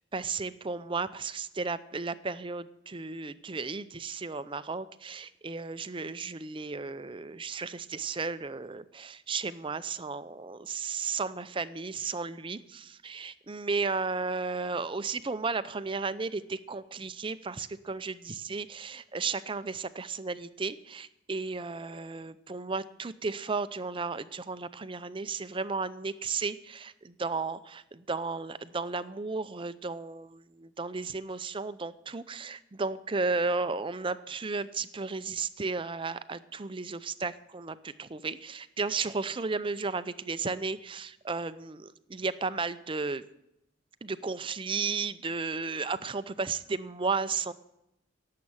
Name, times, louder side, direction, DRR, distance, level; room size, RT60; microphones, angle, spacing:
voice 1, 0.1-43.2 44.0-47.5, right 4 dB, 25° right, 14 dB, 0.5 m, -34 dB
17.5 x 7.6 x 7.2 m, 0.85 s
head